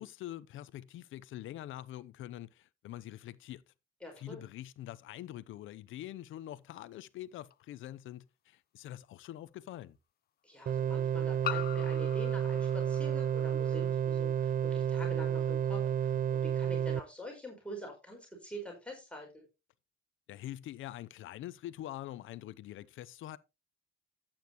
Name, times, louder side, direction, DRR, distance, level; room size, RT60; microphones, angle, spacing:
voice 1, 0.0-3.6 4.2-10.0 20.3-23.4, left 13 dB, 80° left, 0.7 m, -45 dB
voice 2, 4.0-4.4 10.4-19.4, equal, 5° left, 4.8 m, -45 dB
sound 1, 7.5-7.6 9.2-9.3 11.4-13.9, left 11 dB, 50° left, 0.4 m, -42 dB
sound 2, 10.7-17.0, right 9 dB, 45° right, 0.5 m, -31 dB
11.5 x 8.8 x 3.0 m
cardioid pair, 90°, 20 cm